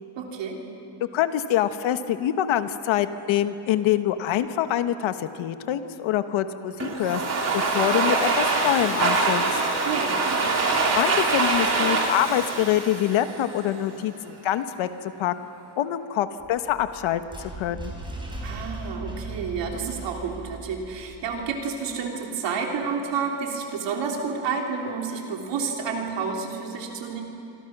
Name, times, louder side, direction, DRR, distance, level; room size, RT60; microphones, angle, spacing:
voice 1, 0.2-0.6 9.9-10.6 18.4-27.2, right 5 dB, 65° right, 1 dB, 3.6 m, -30 dB
voice 2, 1.1-7.2 7.5-9.6 10.9-14.9 15.2-15.3 15.8-17.9, left 11 dB, 80° left, 10 dB, 1.3 m, -25 dB
Domestic sounds home sounds, 6.8-13.7, right 3 dB, 35° right, 3.4 m, -24 dB
sound 1, 16.4-21.6, right 2 dB, 10° right, 4.2 m, -38 dB
27.0 x 25.0 x 6.1 m, 3.0 s
cardioid pair, 165°, 47 cm